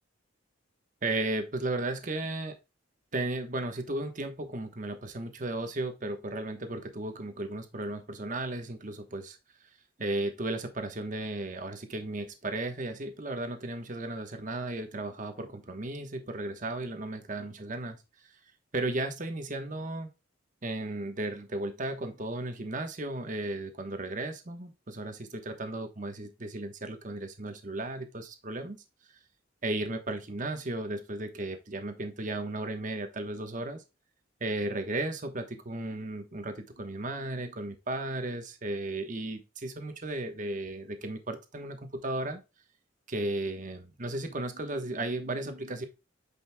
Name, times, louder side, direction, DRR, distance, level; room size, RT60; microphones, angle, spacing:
voice 1, 1.0-2.6 3.1-9.4 10.0-18.0 18.7-20.1 20.6-28.8 29.6-33.8 34.4-42.4 43.1-45.9, right 2 dB, 40° right, 7 dB, 1.1 m, -35 dB
8.3 x 5.5 x 2.2 m, 0.27 s
head